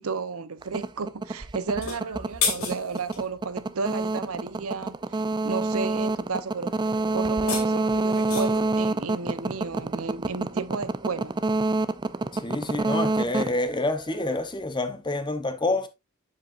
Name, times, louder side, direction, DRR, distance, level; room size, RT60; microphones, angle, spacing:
voice 1, 0.0-11.4, right 4 dB, 80° right, 0.8 m, -33 dB
sound 1, 0.6-14.5, right 2 dB, 20° right, 0.4 m, -27 dB
sound 2, 1.7-3.2 7.2-8.7, left 5 dB, 75° left, 2.5 m, -31 dB
voice 2, 12.3-15.9, left 2 dB, 20° left, 0.8 m, -28 dB
7.6 x 7.6 x 2.5 m
head